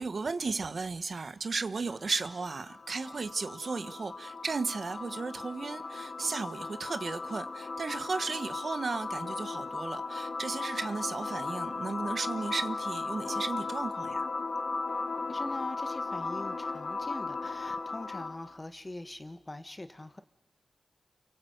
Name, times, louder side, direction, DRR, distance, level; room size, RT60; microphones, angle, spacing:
voice 1, 0.0-14.3, right 4 dB, 60° right, 10 dB, 1.3 m, -35 dB
sound 1, 1.9-18.5, left 3 dB, 60° left, 1.5 m, -37 dB
voice 2, 15.3-20.2, left 2 dB, 25° left, 10 dB, 1.5 m, -43 dB
29.5 x 23.0 x 8.0 m, 0.95 s
cardioid pair, 60°, 0 cm